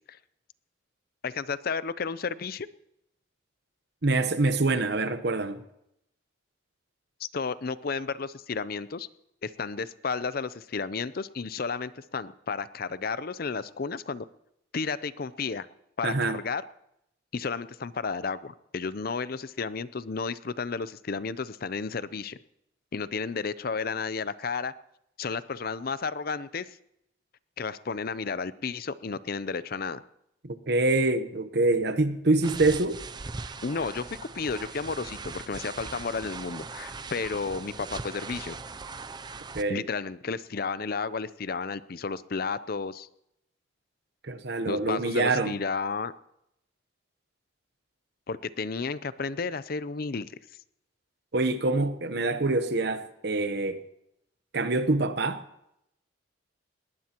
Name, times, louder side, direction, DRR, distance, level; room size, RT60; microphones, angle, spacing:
voice 1, 1.2-2.7 7.2-9.1 9.4-14.3 14.7-15.7 16.0-16.6 17.3-22.4 22.9-24.7 25.2-26.7 27.6-30.0 33.6-38.6 39.7-43.1 44.7-46.1 48.3-50.3, left 4 dB, 50° left, 0.5 m, -32 dB
voice 2, 4.0-5.6 16.0-16.4 30.4-33.0 39.5-39.8 44.2-45.6 51.3-53.8 54.5-55.4, right 2 dB, 55° right, 1.0 m, -25 dB
sound 1, 32.4-39.6, right 4 dB, 20° right, 0.4 m, -40 dB
20.0 x 19.0 x 3.0 m
head